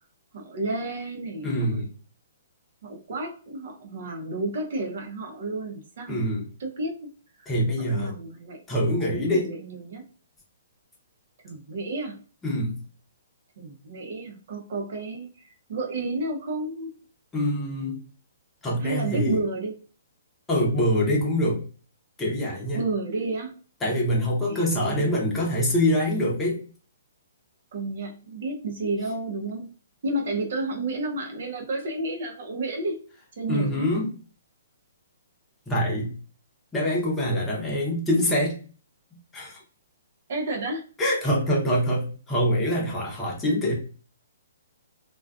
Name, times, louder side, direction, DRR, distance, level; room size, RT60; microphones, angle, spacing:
voice 1, 0.3-1.7 2.8-6.2 6.6-7.1 7.4-7.5 7.8-8.6 9.1-10.1 11.4-12.2 13.6-16.9 18.8-19.7 22.7-23.5 24.5-25.2 27.7-29.7 30.0-33.0 33.3-33.9 40.3-40.8 41.5-41.6, right 2 dB, 55° right, 3 dB, 0.7 m, -31 dB
voice 2, 1.4-1.9 6.1-6.4 7.5-8.1 8.7-9.5 12.4-12.8 17.3-18.0 18.6-19.4 20.5-21.6 22.2-22.8 23.8-26.6 33.5-34.1 35.7-36.1 36.7-38.6 39.3-39.6 41.0-43.7, equal, 10° left, -5 dB, 0.8 m, -24 dB
2.4 x 2.3 x 2.4 m, 0.38 s
hypercardioid pair, 160°, 0 cm